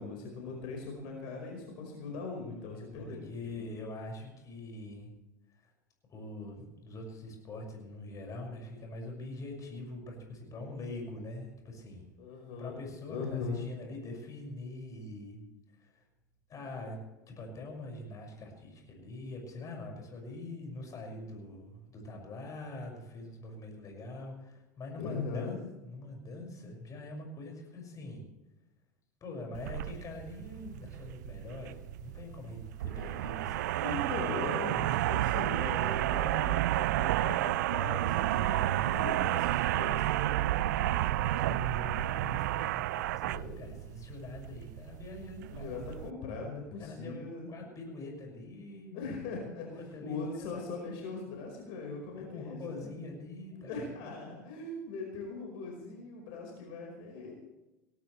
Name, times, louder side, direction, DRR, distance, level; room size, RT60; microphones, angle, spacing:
voice 1, 0.0-3.7 12.2-12.8 13.1-13.6 24.9-25.6 33.8-41.1 43.2-43.7 45.5-47.5 48.9-49.7 50.0-52.9 53.5-57.3, left 4 dB, 60° left, 0 dB, 5.0 m, -40 dB
voice 2, 2.7-5.1 5.6-5.7 6.1-12.0 12.6-15.4 15.8-16.0 16.5-17.0 17.3-28.2 29.2-34.9 38.2-39.0 41.0-42.8 43.1-45.7 46.8-47.2 47.5-49.3 49.6-51.0 52.2-54.1, left 2 dB, 35° left, 1 dB, 6.0 m, -44 dB
sound 1, 29.5-46.1, right 15 dB, 70° right, 0.4 m, -31 dB
18.5 x 17.5 x 3.3 m, 1.0 s
hypercardioid pair, 85°, 10 cm